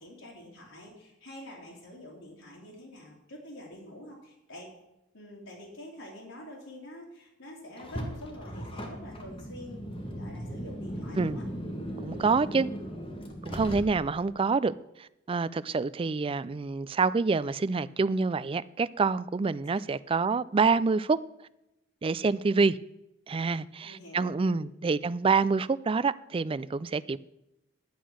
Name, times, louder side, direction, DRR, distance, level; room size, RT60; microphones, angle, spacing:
voice 1, 0.0-4.7 5.1-11.4 19.7-19.8 23.8-24.6, left 1 dB, 90° left, 3.0 m, -46 dB
Car, 7.8-14.3, equal, 30° left, 1.7 m, -38 dB
voice 2, 12.0-12.7 13.4-14.7 15.0-21.2 22.0-22.8 23.3-27.2, right 4 dB, 30° right, 0.3 m, -27 dB
11.5 x 8.3 x 6.2 m
head